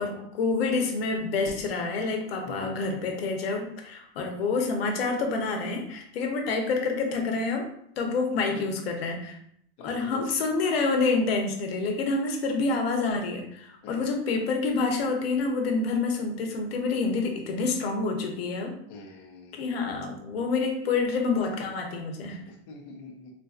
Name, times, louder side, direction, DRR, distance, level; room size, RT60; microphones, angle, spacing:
voice 1, 0.0-7.7 8.0-9.4 9.8-18.7 19.5-22.4, left 4 dB, 85° left, 3 dB, 0.8 m, -28 dB
voice 2, 2.4-3.2 4.3-4.5 8.5-8.7 9.8-10.3 13.8-14.1 18.9-19.6 22.5-23.3, left 3 dB, 30° left, -1 dB, 0.4 m, -45 dB
3.8 x 2.6 x 2.4 m, 0.70 s
supercardioid pair, 180°, 30 cm